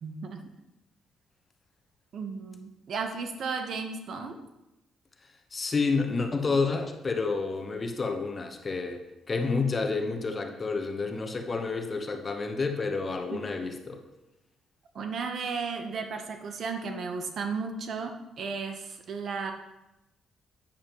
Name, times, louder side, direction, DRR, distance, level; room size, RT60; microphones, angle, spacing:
voice 1, 0.0-0.4 2.1-4.4 13.3-13.4 14.9-19.5, right 5 dB, 60° right, 5 dB, 0.9 m, -34 dB
voice 2, 5.5-14.0, left 4 dB, 35° left, 5 dB, 1.0 m, -29 dB
8.7 x 7.3 x 3.0 m, 0.94 s
cardioid pair, 90°, 0 cm